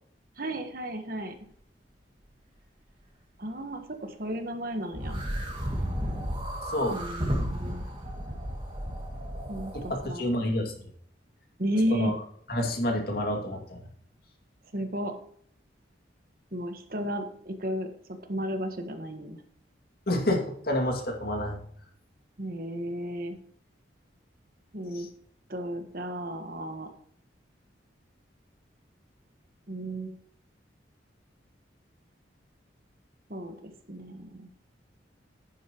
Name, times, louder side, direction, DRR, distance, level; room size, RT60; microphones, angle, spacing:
voice 1, 0.4-1.5 3.4-5.2 6.9-7.8 9.5-10.5 11.6-12.2 14.7-15.1 16.5-19.4 22.4-23.4 24.7-25.1 25.5-26.9 29.7-30.1 33.3-34.5, equal, 50° right, 6 dB, 1.4 m, -34 dB
sound 1, 4.9-10.0, equal, 25° right, 2.2 m, -33 dB
voice 2, 9.9-10.7 11.9-12.1 12.5-13.8 20.1-21.6, left 1 dB, 55° left, 2 dB, 2.3 m, -28 dB
10.5 x 10.0 x 3.0 m, 0.62 s
head